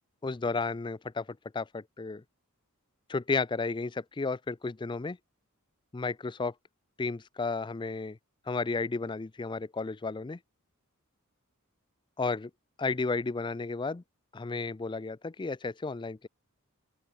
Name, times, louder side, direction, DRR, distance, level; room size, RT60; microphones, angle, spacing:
voice 1, 0.2-1.3 1.5-2.2 3.1-5.2 5.9-6.5 7.0-8.2 8.5-10.4 12.2-12.5 12.8-14.0 14.3-16.3, left 3 dB, 20° left, 0.4 m, -33 dB
open air
head